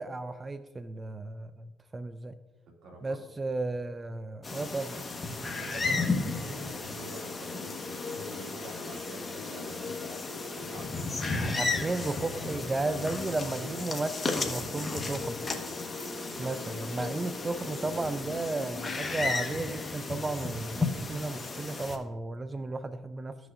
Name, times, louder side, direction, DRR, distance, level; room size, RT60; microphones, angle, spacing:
voice 1, 0.0-2.3 3.0-5.0 11.3-15.4 16.4-23.4, right 2 dB, 25° right, 10 dB, 0.4 m, -34 dB
voice 2, 2.8-3.2 5.4-10.2 10.5-12.6 13.5-13.8 16.3-16.5, right 1 dB, 75° right, 0 dB, 2.2 m, -47 dB
sound 1, 4.4-22.0, left 3 dB, 30° left, 1.1 m, -34 dB
sound 2, 5.8-19.9, left 4 dB, 55° left, 1.2 m, -44 dB
15.0 x 6.2 x 2.4 m, 1.3 s
cardioid pair, 90°, 0 cm